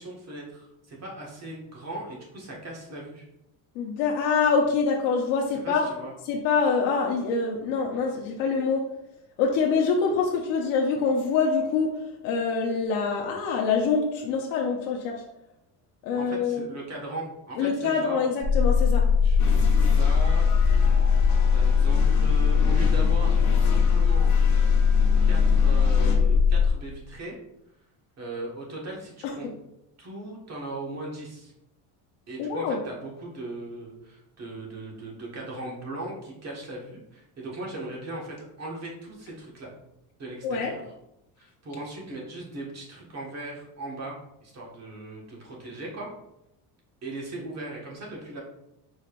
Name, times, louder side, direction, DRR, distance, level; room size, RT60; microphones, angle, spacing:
voice 1, 0.0-3.3 5.6-6.1 16.1-18.2 19.2-20.6 21.5-24.5 25.3-27.4 28.2-29.5 30.0-31.5 32.3-39.7 40.2-40.8 41.4-46.1 47.0-48.4, right 2 dB, 35° right, -2 dB, 1.6 m, -38 dB
voice 2, 3.7-5.9 6.2-8.8 9.4-15.2 16.0-16.7 17.6-19.1 29.2-29.3 32.4-32.8 40.4-40.7, left 5 dB, 85° left, -1 dB, 0.8 m, -25 dB
sound 1, 18.4-26.7, left 6 dB, 5° right, 0.5 m, -20 dB
sound 2, 19.4-26.2, left 2 dB, 40° left, 1.2 m, -37 dB
5.1 x 4.1 x 2.5 m, 0.85 s
cardioid pair, 115°, 44 cm